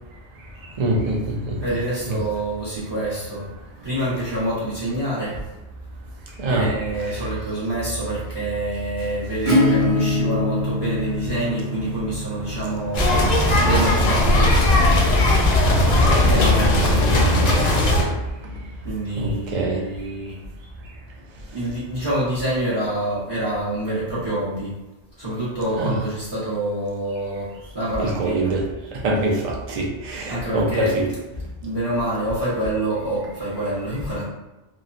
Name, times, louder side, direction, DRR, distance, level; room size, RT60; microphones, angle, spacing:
voice 1, 0.8-1.2 1.5-1.6 2.0-2.1 6.4-6.7 15.7-16.5 19.2-19.8 25.8-25.9 28.0-28.6 29.0-31.1, right 2 dB, 50° right, -1 dB, 0.5 m, -24 dB
voice 2, 1.6-3.5 3.8-5.4 6.5-13.3 13.6-14.6 16.2-17.6 18.8-20.4 21.5-24.7 25.2-28.6 30.3-31.0 31.6-34.2, right 1 dB, 25° right, -9 dB, 0.8 m, -26 dB
Acoustic guitar / Strum, 9.5-15.0, left 2 dB, 70° right, 1.1 m, -25 dB
sound 1, 12.9-18.0, left 1 dB, 50° left, 0.6 m, -17 dB
2.9 x 2.1 x 2.4 m, 1.0 s
omnidirectional pair, 1.1 m